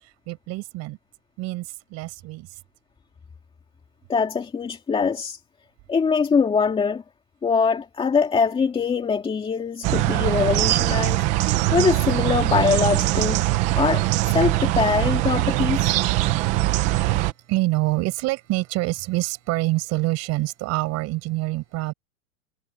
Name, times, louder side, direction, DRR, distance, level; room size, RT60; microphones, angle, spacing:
voice 1, 0.3-1.0 1.4-2.5 12.2-12.3 17.5-21.9, right 20 dB, 35° right, 4.9 m, -26 dB
voice 2, 4.1-5.4 5.9-7.0 7.4-13.4 13.7-14.1 14.3-16.0, left 5 dB, 10° left, 2.4 m, -23 dB
sound 1, 9.8-17.3, right 17 dB, 20° right, 0.4 m, -22 dB
supercardioid pair, 155°, 43 cm